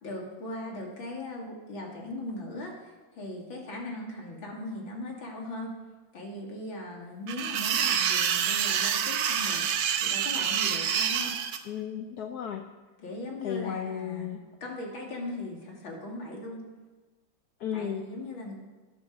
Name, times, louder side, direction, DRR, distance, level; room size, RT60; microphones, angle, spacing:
voice 1, 0.0-5.7 6.1-9.7 10.0-11.3 13.0-14.3 14.6-16.6 17.7-18.5, left 1 dB, 85° left, 0 dB, 3.4 m, -39 dB
sound 1, 7.3-11.6, right 8 dB, 90° right, 1.7 m, -27 dB
voice 2, 11.7-12.7 13.4-14.4 17.6-18.0, left 9 dB, 65° left, 5 dB, 1.1 m, -34 dB
13.0 x 10.5 x 6.6 m, 1.3 s
omnidirectional pair, 2.1 m